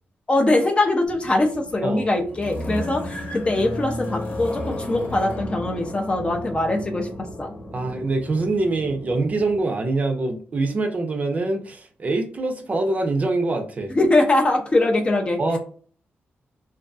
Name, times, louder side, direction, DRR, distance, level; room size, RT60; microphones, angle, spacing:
voice 1, 0.3-7.1 7.4-7.5 14.0-15.4, left 2 dB, 25° left, 3 dB, 0.4 m, -22 dB
sound 1, 1.1-9.6, left 1 dB, 45° left, 0.9 m, -34 dB
voice 2, 7.7-14.0 15.4-15.6, right 2 dB, 35° right, 4 dB, 0.5 m, -24 dB
2.5 x 2.3 x 2.2 m, 0.43 s
wide cardioid pair, 135°, 4 cm